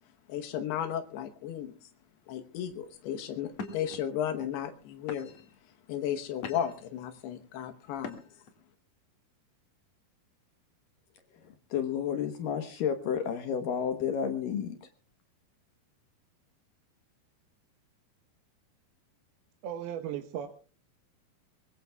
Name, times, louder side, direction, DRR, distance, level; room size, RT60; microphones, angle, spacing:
voice 1, 0.3-1.9 2.3-5.4 5.9-8.2, left 9 dB, 85° left, 6 dB, 3.1 m, -34 dB
sound 1, 2.7-3.0 3.5-4.0 4.6-4.8 5.1-5.6 6.1-6.9 8.0-8.5, left 5 dB, 50° left, 2.6 m, -42 dB
voice 2, 11.4-14.9, left 8 dB, 70° left, 7 dB, 2.5 m, -31 dB
voice 3, 19.6-20.5, right 10 dB, 75° right, 6 dB, 3.0 m, -36 dB
23.5 x 22.0 x 2.3 m, 0.39 s
omnidirectional pair, 4.5 m